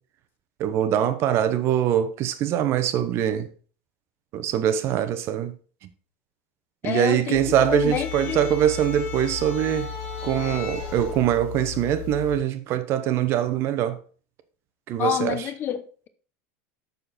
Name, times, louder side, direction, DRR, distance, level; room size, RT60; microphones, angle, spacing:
voice 1, 0.6-3.5 4.3-5.5 6.8-9.9 10.2-14.0 14.9-15.4, right 10 dB, 45° right, 0.9 m, -23 dB
voice 2, 6.8-8.6 15.0-16.1, left 10 dB, 35° left, 0.8 m, -29 dB
sound 1, 7.3-12.4, left 7 dB, 80° left, 2.5 m, -34 dB
6.8 x 6.7 x 4.2 m
supercardioid pair, 140°, 6 cm